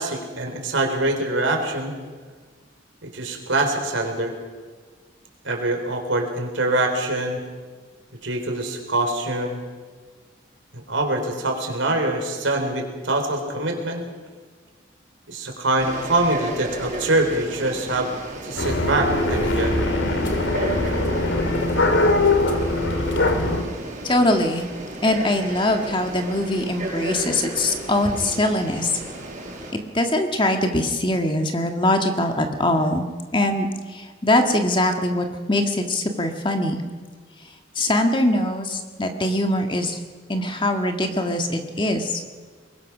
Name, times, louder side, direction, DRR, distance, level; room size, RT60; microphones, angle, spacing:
voice 1, 0.0-2.0 3.0-4.3 5.4-7.4 8.2-9.6 10.7-14.0 15.3-18.1 18.4-19.8, right 2 dB, 90° right, 3 dB, 4.0 m, -24 dB
Frog, 15.8-29.7, right 1 dB, 40° right, 5.4 m, -34 dB
sound 1, 18.6-23.6, left 2 dB, 75° left, 2.6 m, -21 dB
voice 2, 24.0-24.7 25.0-28.9 29.9-33.0 33.3-33.7 34.2-36.8 37.8-40.0 40.3-42.1, left 1 dB, 25° left, 5 dB, 1.7 m, -22 dB
23.0 x 21.0 x 6.1 m, 1.5 s
head